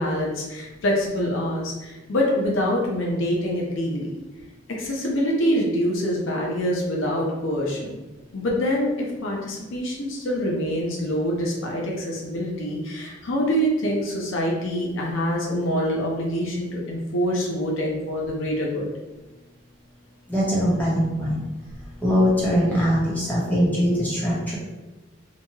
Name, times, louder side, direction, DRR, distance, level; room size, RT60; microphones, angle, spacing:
voice 1, 0.0-4.2 4.7-8.0 8.3-18.9, equal, 80° left, -2 dB, 0.6 m, -25 dB
voice 2, 20.3-21.4 22.0-24.6, equal, 10° left, -7 dB, 0.9 m, -21 dB
2.9 x 2.2 x 2.8 m, 1.1 s
head